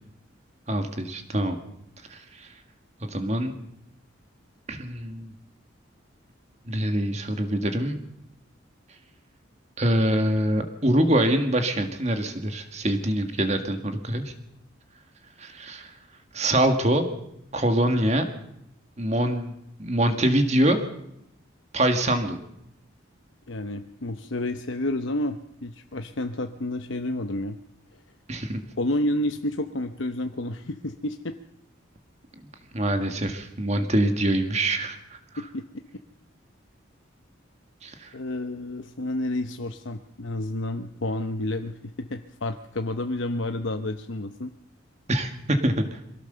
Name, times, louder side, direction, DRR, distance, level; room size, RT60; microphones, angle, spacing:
voice 1, 0.7-1.6 2.1-2.5 3.0-3.5 4.7-5.3 6.7-8.0 9.8-14.3 15.4-15.9 16.3-17.1 17.5-18.3 19.0-19.5 19.8-20.8 21.7-22.4 28.3-28.6 32.7-35.0 37.8-38.1 45.1-46.0, right 1 dB, 35° right, 6 dB, 1.9 m, -24 dB
voice 2, 23.5-27.6 28.8-31.3 35.4-35.6 38.1-44.5, left 1 dB, 70° left, 7 dB, 0.9 m, -30 dB
23.5 x 16.5 x 6.8 m, 0.78 s
head